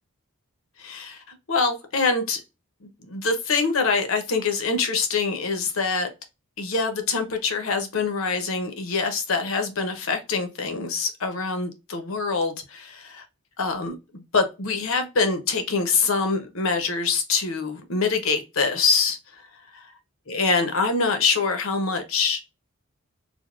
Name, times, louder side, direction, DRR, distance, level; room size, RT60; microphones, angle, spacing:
voice 1, 0.8-2.4 2.8-6.1 6.6-13.2 13.6-19.4 19.7-19.9 20.3-22.4, left 4 dB, 65° left, 0.7 m, -25 dB
3.4 x 2.6 x 2.4 m
head